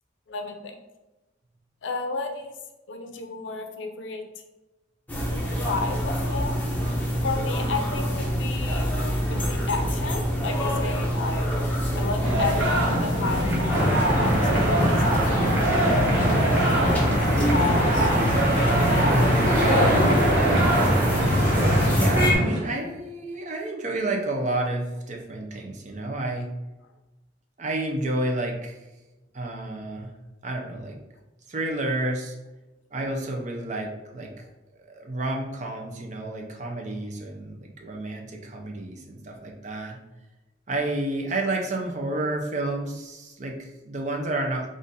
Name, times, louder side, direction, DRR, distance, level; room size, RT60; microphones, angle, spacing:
voice 1, 0.3-0.8 1.8-2.6 2.9-4.3 5.6-6.7 7.2-8.9 9.3-11.5 11.9-13.9 14.2-15.3 16.2-18.1 18.4-19.1, left 4 dB, 75° left, 5 dB, 0.5 m, -33 dB
sound 1, 5.1-22.3, equal, 10° left, 0.7 m, -26 dB
sound 2, 12.2-22.6, right 1 dB, 65° right, 1.2 m, -26 dB
sound 3, 13.7-22.3, equal, 10° right, 1.1 m, -23 dB
voice 2, 21.9-26.5 27.6-28.8 29.3-30.1 30.4-31.0 31.5-32.4 32.9-34.4 34.7-40.0 40.7-44.7, right 2 dB, 40° right, 1 dB, 0.6 m, -30 dB
3.9 x 2.5 x 3.9 m, 1.1 s
head